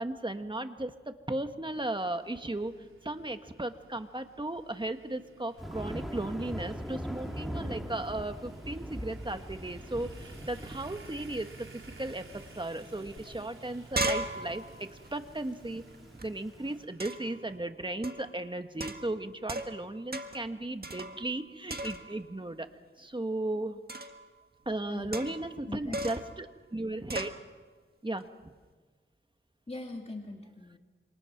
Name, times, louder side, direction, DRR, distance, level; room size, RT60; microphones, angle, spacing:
voice 1, 0.0-2.7 3.0-11.7 12.0-15.8 16.2-22.7 23.0-23.8 24.6-27.3 28.0-28.2, right 2 dB, 25° right, 7 dB, 1.6 m, -36 dB
sound 1, 1.7-17.6, right 3 dB, 75° right, 4.3 m, -55 dB
Thunder, 5.6-16.7, equal, ahead, 2.5 m, -42 dB
sound 2, 13.2-13.3 13.5-16.3 17.0-17.4 18.0-18.3 18.8-19.8 20.1-20.5 20.8-21.4 21.7-22.3 23.9-24.2 25.1-25.5 25.9-26.3 27.1-27.4, right 2 dB, 50° right, 1.7 m, -36 dB
voice 2, 24.8-25.3 25.7-26.0 29.7-30.8, left 2 dB, 30° left, 2 dB, 2.3 m, -41 dB
27.5 x 27.0 x 6.0 m, 1.4 s
wide cardioid pair, 90°, 21 cm